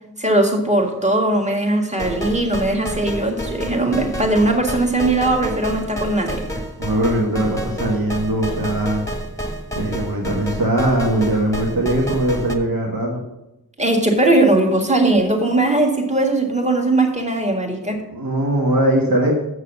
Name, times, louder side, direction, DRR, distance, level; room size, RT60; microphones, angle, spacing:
voice 1, 0.2-6.5 13.8-18.0, right 2 dB, 20° right, 1 dB, 1.8 m, -19 dB
sound 1, 2.0-12.5, equal, 10° left, 1.2 m, -29 dB
voice 2, 6.8-9.1 9.7-13.2 18.1-19.4, right 1 dB, 75° right, -1 dB, 1.6 m, -20 dB
7.1 x 6.5 x 6.7 m, 0.94 s
wide cardioid pair, 45°, 35 cm